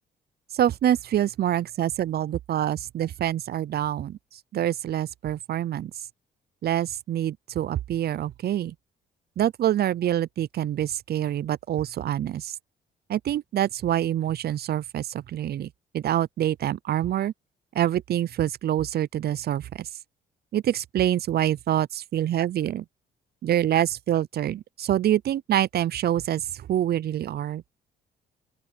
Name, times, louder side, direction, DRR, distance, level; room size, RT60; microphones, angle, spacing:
voice 1, 0.5-5.9 6.6-8.7 9.4-12.5 13.1-17.3 17.7-19.9 20.5-22.8 23.4-27.6, right 11 dB, 55° right, 0.5 m, -26 dB
open air
cardioid pair, 90°, 20 cm